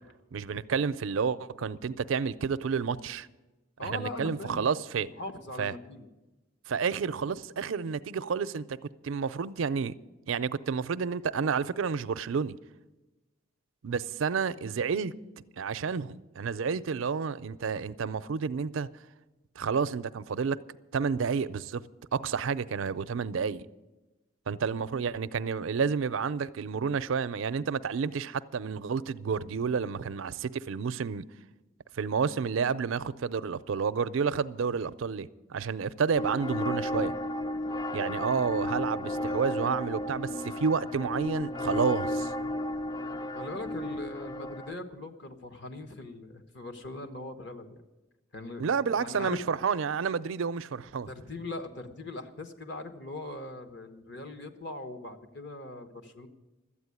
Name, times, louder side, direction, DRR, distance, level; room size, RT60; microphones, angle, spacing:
voice 1, 0.3-3.3 3.8-5.1 5.6-5.7 6.7-8.8 9.0-10.0 10.3-12.6 13.8-15.1 15.6-18.9 19.6-20.6 20.9-21.8 22.1-23.6 24.5-31.2 31.9-37.1 37.9-42.3 48.6-51.1, right 6 dB, 70° right, 0.4 m, -30 dB
voice 2, 3.8-6.1 43.3-47.8 48.3-48.6 49.0-49.4 51.1-56.3, left 2 dB, 55° left, 1.2 m, -40 dB
sound 1, 36.1-44.8, left 1 dB, 20° left, 0.4 m, -33 dB
13.0 x 8.5 x 9.6 m
head